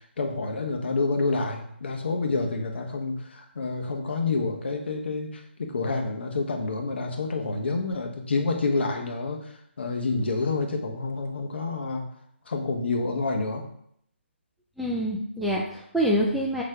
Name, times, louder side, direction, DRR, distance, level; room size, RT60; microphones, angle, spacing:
voice 1, 0.2-9.4 9.8-12.0 12.5-13.6, left 3 dB, 60° left, 3 dB, 1.3 m, -28 dB
voice 2, 14.8-16.6, equal, ahead, -4 dB, 0.3 m, -26 dB
6.8 x 3.3 x 5.0 m, 0.70 s
hypercardioid pair, 165°, 7 cm